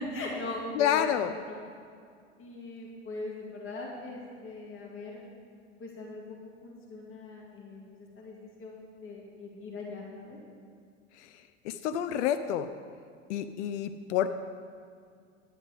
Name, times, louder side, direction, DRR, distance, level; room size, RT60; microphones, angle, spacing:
voice 1, 0.0-1.0 1.5-1.6 2.4-5.2 5.8-10.4, left 2 dB, 35° left, -2 dB, 2.2 m, -40 dB
voice 2, 0.7-1.3 11.2-11.3 11.6-12.7 13.3-14.3, left 10 dB, 65° left, 10 dB, 0.6 m, -28 dB
11.0 x 8.9 x 5.0 m, 2.2 s
hypercardioid pair, 80°, 37 cm